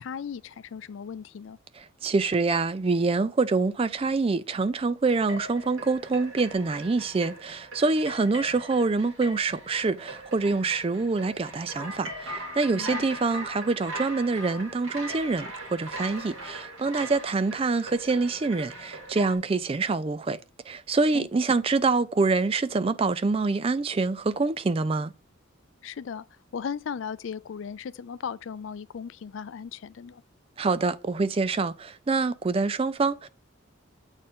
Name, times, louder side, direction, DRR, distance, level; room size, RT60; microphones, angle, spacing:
voice 1, 0.0-1.6 12.7-13.1 21.1-21.3 25.8-26.3 26.5-30.2, left 7 dB, 65° left, 0.4 m, -36 dB
voice 2, 1.8-20.4 20.7-25.1 30.6-33.3, right 3 dB, 25° right, 0.3 m, -26 dB
sound 1, 5.0-19.4, right 1 dB, 75° right, 2.8 m, -40 dB
7.9 x 4.2 x 3.7 m
head